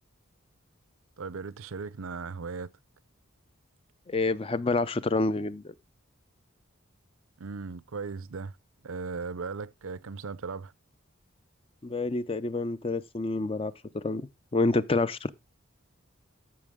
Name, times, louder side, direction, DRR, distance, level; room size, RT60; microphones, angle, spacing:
voice 1, 1.2-2.7 7.4-8.6 8.8-10.7, right 4 dB, 80° right, 0.6 m, -37 dB
voice 2, 4.1-5.7 11.8-15.3, left 3 dB, 25° left, 0.4 m, -28 dB
13.0 x 6.0 x 3.6 m
head